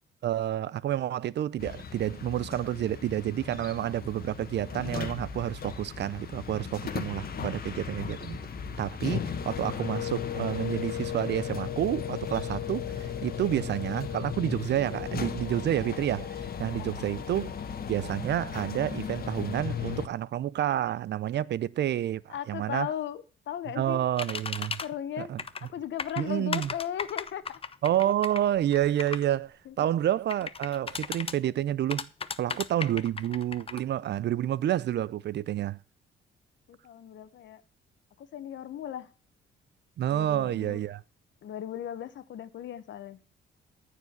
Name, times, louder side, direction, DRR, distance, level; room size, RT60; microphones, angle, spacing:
voice 1, 0.2-8.4 8.8-17.5 17.9-22.9 23.8-24.8 25.2-25.4 26.2-26.7 27.8-32.1 32.4-35.8 40.0-41.0, right 12 dB, 60° right, 0.6 m, -29 dB
sound 1, 1.6-20.1, left 7 dB, 50° left, 1.5 m, -36 dB
voice 2, 22.3-24.0 24.8-25.3 25.6-27.6 29.6-29.8 36.7-37.6 38.2-39.1 40.1-40.8 41.4-43.2, left 10 dB, 70° left, 1.2 m, -37 dB
sound 2, 24.2-24.9 25.4-25.7 26.0-29.3 30.3-31.4 31.9-33.8, left 5 dB, 30° left, 0.8 m, -35 dB
14.0 x 4.9 x 8.0 m
cardioid pair, 90°, 20 cm